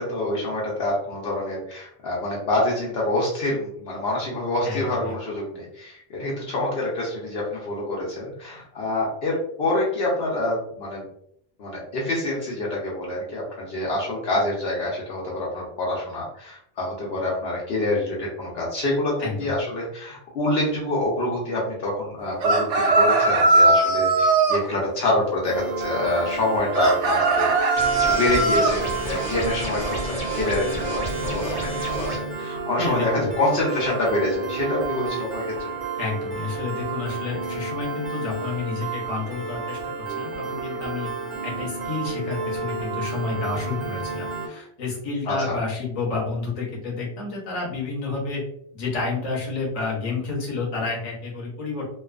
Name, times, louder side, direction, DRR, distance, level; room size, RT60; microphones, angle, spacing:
voice 1, 0.0-11.0 11.6-35.4 45.3-45.6, left 1 dB, 65° left, -4 dB, 0.8 m, -26 dB
voice 2, 4.6-5.1 19.2-19.5 32.8-33.3 36.0-41.1 41.4-48.4 48.7-52.0, left 4 dB, 35° left, -3 dB, 0.8 m, -30 dB
sound 1, 22.4-24.6 26.7-28.8, right 3 dB, 90° right, 0.9 m, -19 dB
Piano, 25.4-44.5, right 4 dB, 60° right, 0.7 m, -31 dB
sound 2, 27.8-32.2, right 1 dB, 15° right, 0.7 m, -31 dB
2.5 x 2.3 x 2.4 m, 0.69 s
omnidirectional pair, 1.2 m